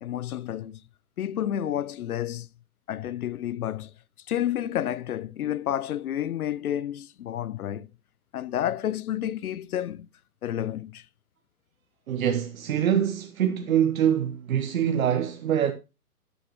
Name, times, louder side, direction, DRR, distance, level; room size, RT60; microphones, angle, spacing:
voice 1, 0.0-0.8 1.2-2.5 2.9-3.9 4.3-7.9 8.3-10.1 10.4-11.0, left 11 dB, 70° left, 0.7 m, -30 dB
voice 2, 12.1-15.7, right 9 dB, 65° right, 1.1 m, -24 dB
12.5 x 8.0 x 3.0 m
hypercardioid pair, 130°, 45 cm